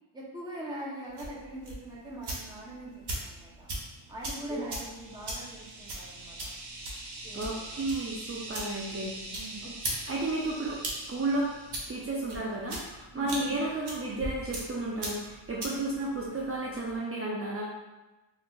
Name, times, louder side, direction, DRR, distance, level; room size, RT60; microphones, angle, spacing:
voice 1, 0.1-3.7 4.1-6.5 7.2-7.8 9.3-9.7 13.1-13.3, right 1 dB, 10° right, -5 dB, 0.8 m, -42 dB
sound 1, 1.1-17.0, right 1 dB, 55° right, 1.0 m, -41 dB
sound 2, 4.4-12.2, right 2 dB, 80° right, 0.9 m, -45 dB
voice 2, 7.3-9.1 9.6-9.7 10.1-10.8 11.1-11.5 11.9-17.7, right 2 dB, 30° right, -4 dB, 0.5 m, -32 dB
2.6 x 2.3 x 3.7 m, 1.1 s
cardioid pair, 95°, 49 cm